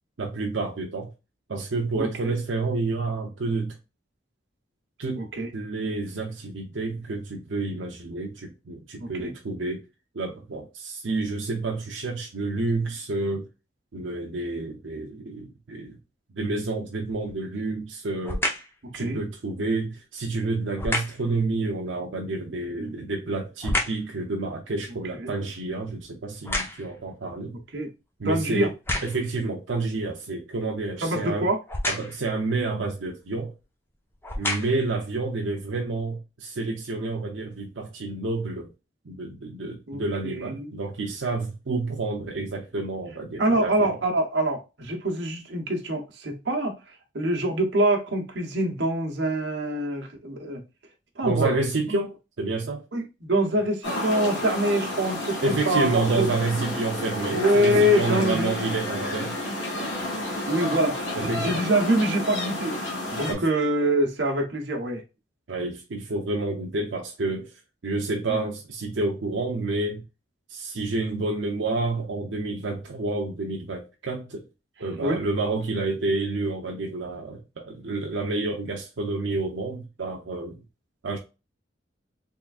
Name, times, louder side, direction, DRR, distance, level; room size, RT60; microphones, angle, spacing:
voice 1, 0.2-1.1 1.5-3.8 5.0-5.3 5.5-9.8 10.1-13.5 13.9-16.0 16.3-18.4 18.9-27.6 28.2-28.7 29.0-31.5 31.9-33.5 34.4-38.7 39.0-44.0 51.2-52.8 55.4-59.4 61.2-61.6 63.3-63.4 65.5-67.5 67.8-70.0 70.5-74.4 74.8-80.6 81.0-81.2, right 3 dB, 85° right, 0.6 m, -29 dB
voice 2, 5.2-5.5 9.0-9.3 18.9-19.2 22.8-22.9 25.2-25.3 27.7-27.9 28.2-28.7 31.0-31.6 39.9-40.7 43.4-50.6 51.2-51.6 51.9-52.0 52.9-56.3 57.3-58.5 60.5-62.8 63.1-65.0 68.3-68.4 75.0-75.2, right 1 dB, 65° right, 1.1 m, -25 dB
sound 1, 17.1-17.5 18.2-18.8 20.8-21.3 22.7-24.1 24.6-27.1 27.7-27.8 28.6-29.4 31.7-32.3 33.3-33.4 34.1-34.9 35.6-35.7, left 1 dB, 10° left, 0.7 m, -30 dB
sound 2, 53.8-63.3, left 1 dB, 85° left, 1.4 m, -31 dB
3.7 x 3.4 x 2.4 m
head